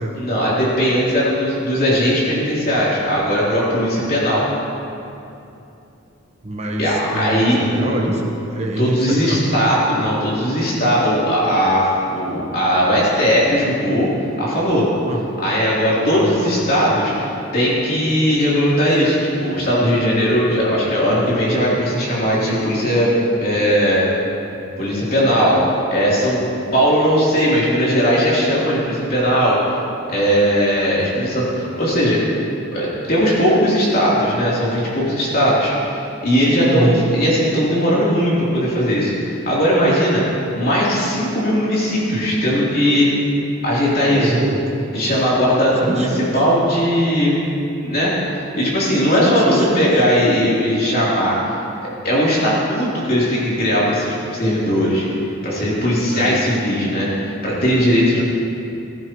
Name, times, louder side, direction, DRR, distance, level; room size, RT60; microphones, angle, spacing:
voice 1, 0.1-4.4 6.8-7.9 8.8-14.1 14.4-14.9 15.4-23.1 23.4-24.1 24.8-25.6 25.9-26.4 26.7-29.8 30.1-32.2 32.7-40.2 40.6-43.1 43.6-44.3 44.9-47.3 47.8-51.6 52.0-55.0 55.4-57.1 57.4-58.2, equal, 45° left, -7 dB, 3.3 m, -18 dB
voice 2, 6.4-9.4 15.1-15.2 16.1-16.5 36.6-37.0 44.1-44.6 45.8-46.3 49.1-49.9 56.1-56.4 58.2-58.3, right 1 dB, 30° right, 1 dB, 1.2 m, -24 dB
15.0 x 14.5 x 3.1 m, 2.7 s
head